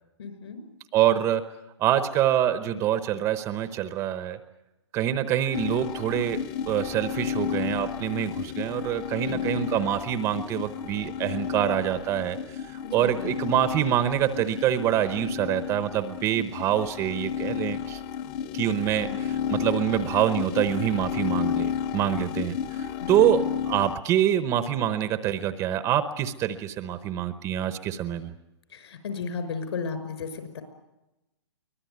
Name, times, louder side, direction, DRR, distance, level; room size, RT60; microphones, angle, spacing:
voice 1, 0.2-0.6 9.2-9.6 12.8-13.3 18.9-19.3 23.0-23.5 28.7-30.6, left 5 dB, 65° left, 9 dB, 5.8 m, -35 dB
voice 2, 0.9-1.5 1.8-4.4 4.9-12.4 12.7-18.0 18.5-19.1 19.5-28.3, right 11 dB, 20° right, 12 dB, 0.9 m, -25 dB
sound 1, 5.5-23.9, left 8 dB, 25° left, 0.9 m, -32 dB
24.0 x 18.5 x 9.4 m, 0.98 s
hypercardioid pair, 160°, 15 cm